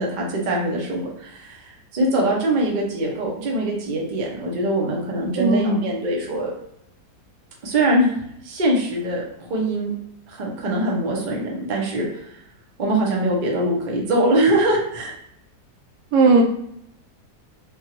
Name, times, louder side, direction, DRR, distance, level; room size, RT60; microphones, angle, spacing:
voice 1, 0.0-6.5 7.6-9.9 10.3-12.4 12.8-15.1, right 1 dB, 55° right, -1 dB, 0.5 m, -23 dB
voice 2, 5.4-5.8 16.1-16.4, right 3 dB, 75° right, 3 dB, 1.1 m, -16 dB
3.5 x 2.2 x 2.9 m, 0.75 s
omnidirectional pair, 1.8 m